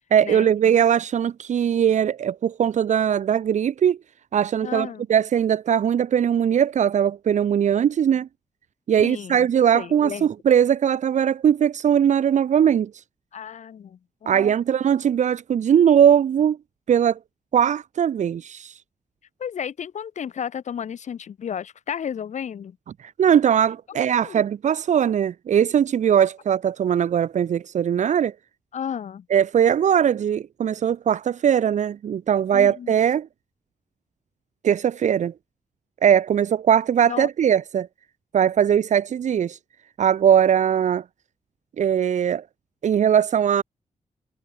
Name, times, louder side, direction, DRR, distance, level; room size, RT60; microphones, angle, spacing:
voice 1, 0.1-4.0 4.3-8.3 8.9-13.0 14.3-16.6 16.9-17.2 17.5-18.8 23.0-28.3 29.3-33.3 34.6-35.3 36.0-37.9 38.3-39.6 40.0-41.0 41.8-42.4 42.8-43.6, right 9 dB, 70° right, 0.9 m, -20 dB
voice 2, 4.6-5.0 9.0-9.5 9.7-10.3 13.3-14.5 19.4-22.8 23.9-24.0 24.2-24.4 28.7-29.3 32.5-33.0 37.0-37.3, left 8 dB, 70° left, 1.6 m, -33 dB
wide cardioid pair, 160°, 13 cm